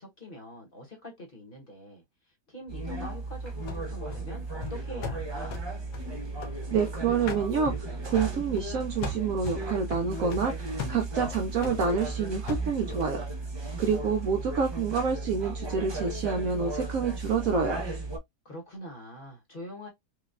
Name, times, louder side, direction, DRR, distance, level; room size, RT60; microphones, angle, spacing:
voice 1, 0.0-5.6 13.6-14.6 18.4-19.9, left 1 dB, 35° left, 1.1 m, -45 dB
sound 1, 2.7-18.2, right 2 dB, 40° right, 0.3 m, -35 dB
sound 2, 3.7-6.9 7.3-8.7 9.0-13.2, left 1 dB, 75° left, 1.3 m, -39 dB
voice 2, 6.7-13.2 13.8-17.8, right 5 dB, 70° right, 0.9 m, -28 dB
4.9 x 2.3 x 2.4 m
omnidirectional pair, 1.8 m